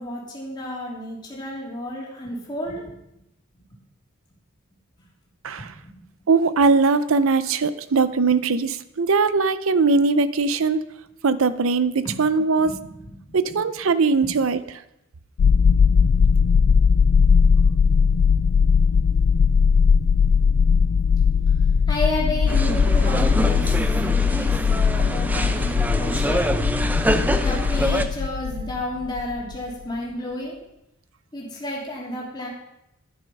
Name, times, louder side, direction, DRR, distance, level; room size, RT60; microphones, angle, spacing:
voice 1, 0.0-2.9 5.6-6.0 12.0-12.2 12.6-13.2 14.2-14.3 20.5-20.6 20.9-21.6 21.9-26.4 27.4-30.6 31.3-32.5, left 1 dB, 20° left, -4 dB, 3.0 m, -32 dB
voice 2, 6.3-10.9 11.2-12.8 13.3-14.6, right 4 dB, 65° right, 14 dB, 0.5 m, -20 dB
sound 1, 15.4-29.5, left 6 dB, 65° left, 0.3 m, -19 dB
sound 2, 22.5-28.0, right 1 dB, 10° right, 0.5 m, -25 dB
11.0 x 9.7 x 5.4 m, 0.86 s
head